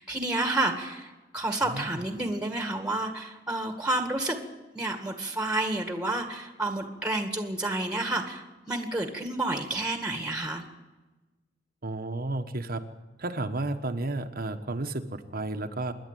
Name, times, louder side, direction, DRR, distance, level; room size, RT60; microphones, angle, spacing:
voice 1, 0.0-4.4 4.7-10.6, right 2 dB, 5° right, 5 dB, 2.0 m, -30 dB
voice 2, 1.6-2.0 11.8-12.8 13.2-15.9, right 2 dB, 50° right, 6 dB, 1.3 m, -32 dB
27.0 x 11.0 x 9.3 m, 1.1 s
head